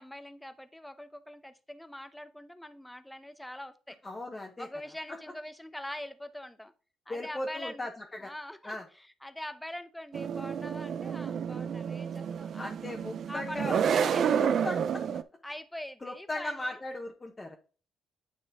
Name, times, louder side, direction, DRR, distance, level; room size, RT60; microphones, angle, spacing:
voice 1, 0.0-4.0 4.6-6.7 7.1-7.9 8.2-12.7 13.3-14.3 15.4-16.8, left 1 dB, 5° left, 12 dB, 0.7 m, -43 dB
voice 2, 4.0-4.7 7.1-8.3 8.6-8.8 12.6-15.0 16.0-17.6, left 1 dB, 25° left, 1 dB, 1.1 m, -38 dB
sound 1, 10.1-15.2, right 7 dB, 65° right, 0.4 m, -30 dB
9.2 x 4.2 x 3.6 m, 0.37 s
cardioid pair, 90°, 0 cm